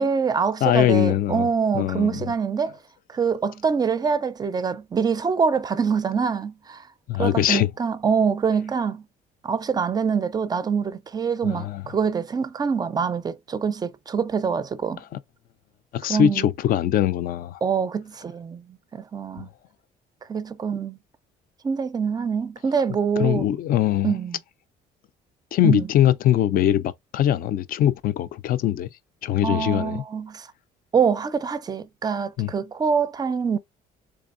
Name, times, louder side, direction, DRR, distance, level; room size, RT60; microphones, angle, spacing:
voice 1, 0.0-2.8 3.1-6.9 7.2-9.1 9.4-15.0 16.1-16.5 17.6-19.5 20.3-21.0 21.6-23.5 24.0-24.4 25.6-25.9 29.4-30.5 30.9-33.6, right 6 dB, 25° right, 0.4 m, -25 dB
voice 2, 0.6-1.5 1.7-2.2 7.1-7.7 11.4-11.8 15.9-17.6 19.4-19.5 23.2-24.1 25.5-28.9 29.2-30.0 32.4-32.5, left 11 dB, 60° left, 0.4 m, -22 dB
3.6 x 3.4 x 2.5 m
cardioid pair, 110°, 17 cm